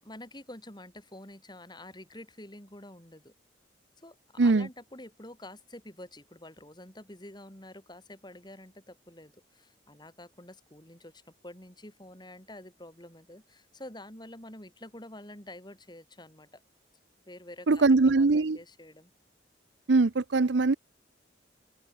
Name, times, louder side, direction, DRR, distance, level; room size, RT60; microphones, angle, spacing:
voice 1, 0.0-3.3 4.0-16.6 17.3-17.9 18.1-19.1, left 1 dB, 25° left, 4.7 m, -48 dB
voice 2, 4.4-4.7 17.7-18.6 19.9-20.7, right 3 dB, 75° right, 0.7 m, -22 dB
head